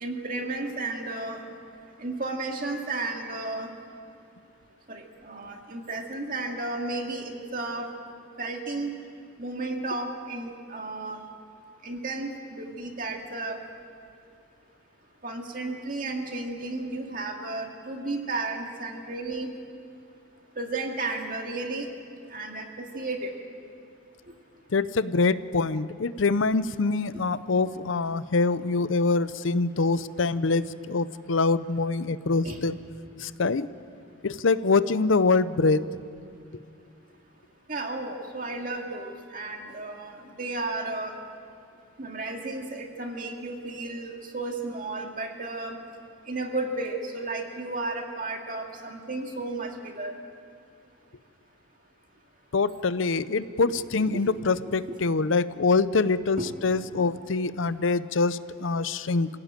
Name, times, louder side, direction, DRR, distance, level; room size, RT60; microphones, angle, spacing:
voice 1, 0.0-1.4 2.0-3.7 4.9-7.9 8.4-8.9 9.4-11.2 11.8-13.6 15.2-19.5 20.6-21.9 22.3-22.7 22.9-23.3 32.4-32.6 37.7-40.1 40.4-41.1 42.0-45.8 46.3-50.1 53.7-53.9 54.1-54.2 56.4-56.5 57.0-57.1, right 2 dB, 40° right, 2 dB, 2.2 m, -33 dB
voice 2, 24.7-32.8 33.2-33.7 34.2-35.8 52.5-59.3, left 3 dB, 75° left, 15 dB, 0.6 m, -24 dB
26.5 x 16.5 x 8.9 m, 2.4 s
head